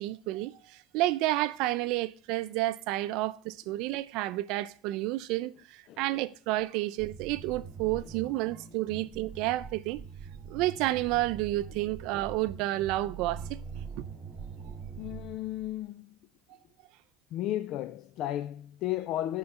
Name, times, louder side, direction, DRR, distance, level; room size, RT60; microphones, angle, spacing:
voice 1, 0.0-10.0 10.5-13.6 14.0-14.1 14.7-14.8, right 16 dB, 70° right, 0.5 m, -30 dB
sound 1, 7.0-15.8, right 6 dB, 25° right, 1.8 m, -43 dB
voice 2, 15.0-16.2 17.3-19.4, left 13 dB, 55° left, 0.3 m, -34 dB
9.6 x 3.9 x 4.5 m
cardioid pair, 135°, 0 cm